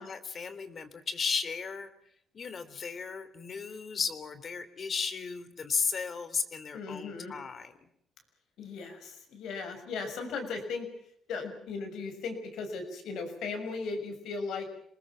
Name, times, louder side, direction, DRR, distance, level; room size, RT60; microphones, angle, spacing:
voice 1, 0.0-1.9 2.3-7.9, left 5 dB, 45° left, 12 dB, 3.2 m, -35 dB
voice 2, 6.7-7.3 8.6-10.9 11.3-14.7, left 4 dB, 80° left, 6 dB, 6.6 m, -37 dB
27.5 x 20.5 x 7.3 m, 0.68 s
cardioid pair, 90°, 0 cm